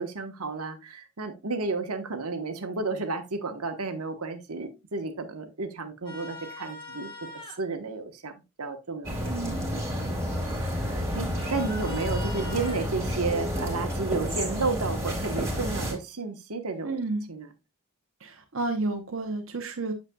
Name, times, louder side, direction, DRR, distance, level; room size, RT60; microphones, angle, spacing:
voice 1, 0.0-7.1 7.6-9.8 10.1-10.3 10.6-17.0 17.3-17.5, right 3 dB, 85° right, 1.2 m, -32 dB
sound 1, 6.1-7.6 11.3-12.9 15.8-15.9, left 1 dB, 20° left, 1.4 m, -42 dB
sound 2, 9.0-15.9, equal, 15° right, 2.2 m, -30 dB
voice 2, 9.2-9.6 16.8-17.2 18.2-19.9, right 2 dB, 60° right, 0.8 m, -31 dB
8.4 x 6.7 x 2.3 m
head